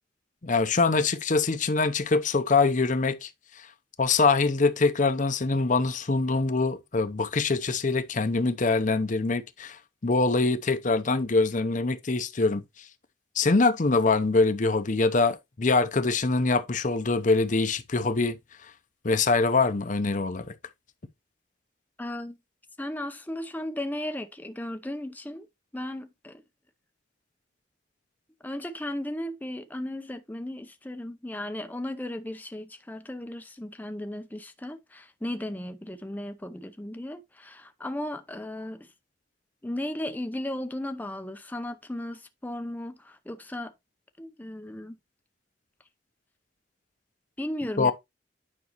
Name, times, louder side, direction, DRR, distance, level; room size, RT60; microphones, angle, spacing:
voice 1, 0.4-3.3 3.6-3.7 4.0-12.9 13.4-18.7 19.0-20.5 47.8-47.9, left 3 dB, 45° left, 0.7 m, -24 dB
voice 2, 22.0-22.4 22.8-25.5 25.7-26.4 28.4-38.9 39.6-43.7 44.2-45.0 47.4-47.9, left 1 dB, 10° left, 0.6 m, -35 dB
9.5 x 5.3 x 3.0 m
head